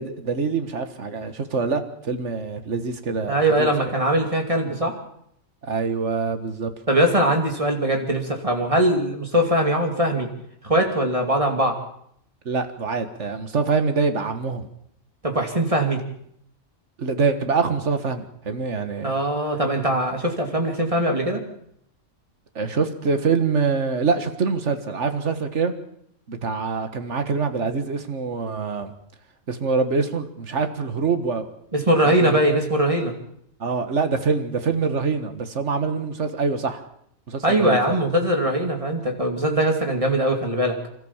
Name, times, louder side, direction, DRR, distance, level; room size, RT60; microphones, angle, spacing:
voice 1, 0.0-3.7 5.6-6.7 12.5-14.7 17.0-19.1 22.6-25.7 26.3-28.9 29.5-31.5 32.0-32.4 33.6-36.8 37.3-38.0, right 4 dB, 60° right, 9 dB, 1.9 m, -25 dB
voice 2, 3.3-5.0 6.9-10.3 10.6-11.8 15.2-16.0 19.0-21.4 31.7-33.1 37.4-40.8, right 1 dB, 25° right, 3 dB, 2.8 m, -21 dB
26.0 x 13.5 x 7.3 m, 0.71 s
omnidirectional pair, 1.4 m